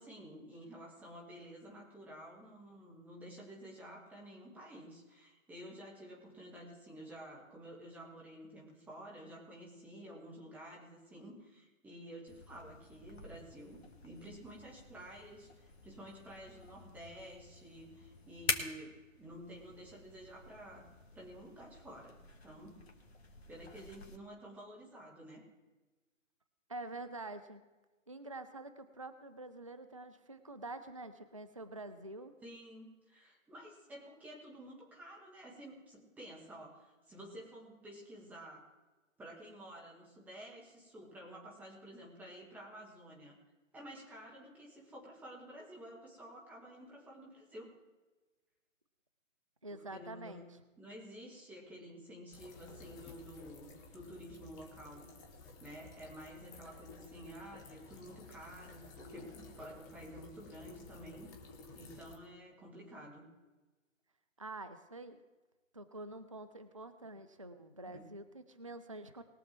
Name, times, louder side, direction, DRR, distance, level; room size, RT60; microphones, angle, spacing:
voice 1, 0.0-20.9 21.1-22.2 22.4-22.8 23.5-25.4 32.4-38.6 39.2-43.4 43.7-47.7 49.7-50.5 50.8-55.1 55.6-61.3 61.7-63.3 67.8-68.1, equal, 5° right, -3 dB, 1.7 m, -51 dB
sound 1, 12.3-24.2, left 4 dB, 55° left, 1.8 m, -46 dB
voice 2, 26.7-27.6 28.1-32.3 49.6-50.6 64.4-65.2 65.7-69.2, right 2 dB, 25° right, 11 dB, 0.4 m, -47 dB
sound 2, 52.3-62.2, left 3 dB, 15° left, 1.1 m, -54 dB
21.0 x 7.0 x 4.5 m, 1.2 s
figure-of-eight pair, 145°, 39 cm